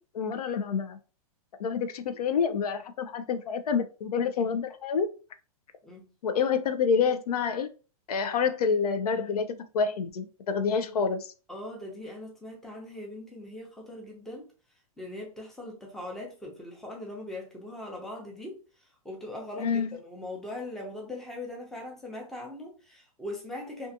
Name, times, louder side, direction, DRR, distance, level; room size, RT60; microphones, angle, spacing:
voice 1, 0.1-1.0 1.6-5.1 6.2-7.7 8.1-11.3 19.6-20.0, left 6 dB, 85° left, 0.5 m, -28 dB
voice 2, 11.5-14.5 15.0-23.9, left 1 dB, ahead, 0.6 m, -40 dB
2.4 x 2.4 x 2.7 m
hypercardioid pair, 140°, 19 cm